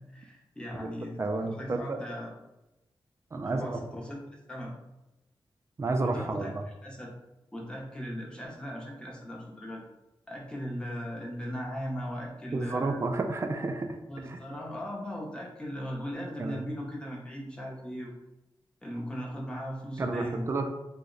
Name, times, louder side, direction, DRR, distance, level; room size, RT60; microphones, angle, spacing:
voice 1, 0.0-2.3 3.4-4.2 4.5-4.7 6.0-6.5 6.8-7.1 7.5-9.8 10.3-13.0 14.1-18.1 18.8-20.5, equal, 10° left, -2 dB, 0.6 m, -38 dB
voice 2, 1.2-2.0 3.3-3.8 5.8-6.5 12.5-14.0 14.3-14.4 16.4-16.6 20.0-20.7, right 3 dB, 30° right, 5 dB, 0.3 m, -30 dB
2.8 x 2.0 x 3.7 m, 0.94 s
wide cardioid pair, 160°, 9 cm